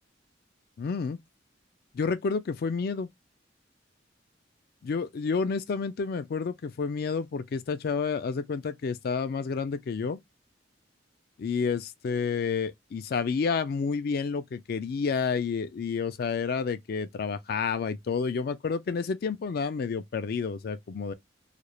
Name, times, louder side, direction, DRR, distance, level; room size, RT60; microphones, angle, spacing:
voice 1, 0.8-1.2 1.9-3.1 4.8-10.2 11.4-21.1, left 5 dB, 55° left, 0.3 m, -30 dB
2.4 x 2.0 x 2.8 m
head